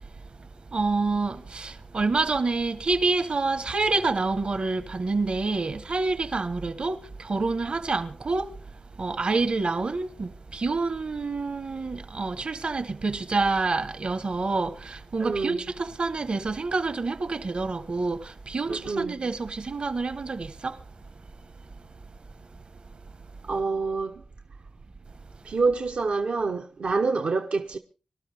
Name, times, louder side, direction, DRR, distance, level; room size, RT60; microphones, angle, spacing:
voice 1, 0.4-8.6 9.0-20.8, right 3 dB, 55° right, 1.1 m, -27 dB
voice 2, 15.2-15.6 18.7-19.2 23.4-24.2 25.4-27.8, right 4 dB, 75° right, 0.9 m, -27 dB
24.5 x 12.5 x 3.5 m
wide cardioid pair, 85°, 2 cm